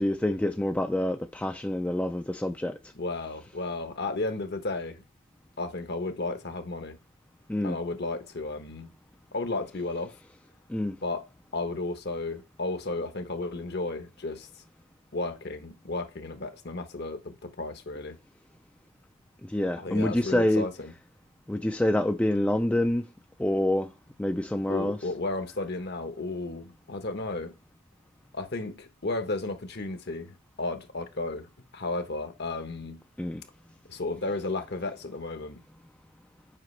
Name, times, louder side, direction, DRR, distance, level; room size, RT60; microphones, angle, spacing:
voice 1, 0.0-2.8 7.5-7.8 10.7-11.0 19.5-20.6 21.5-23.0 23.4-23.9 24.2-25.0 33.2-33.4, left 1 dB, 5° left, 0.3 m, -26 dB
voice 2, 2.9-5.0 5.6-7.0 7.6-8.9 9.3-10.1 11.0-11.3 11.5-14.6 15.1-18.2 19.8-20.9 24.7-27.6 28.3-33.0 33.9-35.6, left 2 dB, 55° left, 1.0 m, -33 dB
7.6 x 5.1 x 3.2 m
head